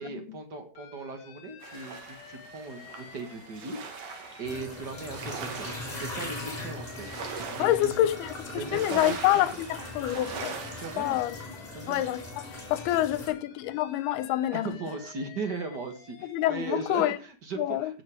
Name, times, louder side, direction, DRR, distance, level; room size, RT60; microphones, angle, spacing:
voice 1, 0.0-8.1 8.5-9.4 10.8-11.2 11.7-12.0 14.5-18.0, right 3 dB, 45° right, 1.4 m, -38 dB
Alarm, 0.8-4.6 4.9-8.8 9.1-13.0 13.3-17.1, left 7 dB, 60° left, 2.5 m, -51 dB
sound 1, 1.6-11.2, right 5 dB, 60° right, 3.2 m, -42 dB
sound 2, 4.4-13.3, left 2 dB, 10° left, 5.8 m, -40 dB
voice 2, 7.6-8.3 8.5-10.6 11.0-11.3 11.9-14.7 16.2-17.2 17.6-17.9, left 14 dB, 85° left, 2.8 m, -27 dB
17.0 x 7.7 x 5.0 m
omnidirectional pair, 4.5 m